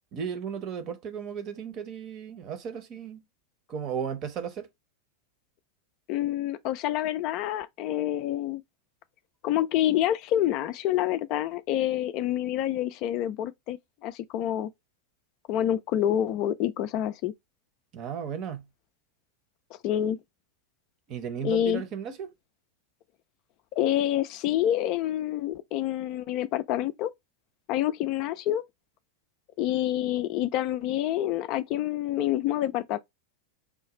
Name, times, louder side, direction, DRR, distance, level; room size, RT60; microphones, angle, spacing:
voice 1, 0.1-3.2 3.7-4.7 17.9-18.6 21.1-22.3, right 7 dB, 35° right, 0.8 m, -35 dB
voice 2, 6.1-8.6 9.4-14.7 15.5-17.3 19.8-20.2 21.4-21.8 23.7-27.1 27.7-28.6 29.6-33.0, left 12 dB, 40° left, 0.3 m, -27 dB
4.9 x 2.3 x 3.0 m
figure-of-eight pair, 90°, 0 cm